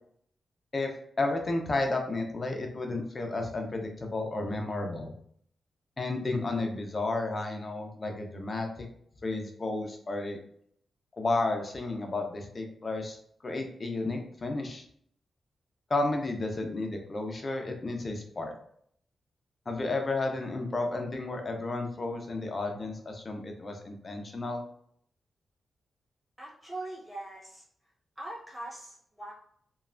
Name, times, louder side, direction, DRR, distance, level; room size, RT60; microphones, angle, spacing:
voice 1, 0.7-5.1 6.0-8.9 9.2-10.4 11.2-13.2 13.4-14.8 15.9-18.5 19.7-24.6, left 2 dB, 35° left, 3 dB, 0.5 m, -32 dB
voice 2, 26.4-27.6 28.2-29.3, right 2 dB, 15° right, -6 dB, 1.4 m, -41 dB
3.1 x 2.2 x 2.4 m, 0.64 s
wide cardioid pair, 105°, 0 cm